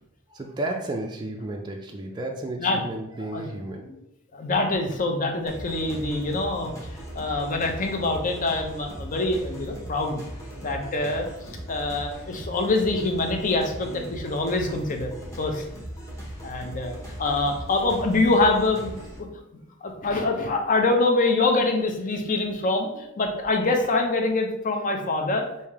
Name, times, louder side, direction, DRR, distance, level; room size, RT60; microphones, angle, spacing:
voice 1, 0.3-3.9 6.2-6.3, right 2 dB, 20° right, 1 dB, 0.3 m, -33 dB
voice 2, 4.3-6.7 7.2-10.2 10.6-11.3 11.7-15.1 15.4-15.6 16.4-19.3 19.5-25.5, left 2 dB, 40° left, 3 dB, 0.6 m, -25 dB
sound 1, 5.5-19.2, equal, 15° left, 1.0 m, -39 dB
3.5 x 2.7 x 4.6 m, 0.83 s
head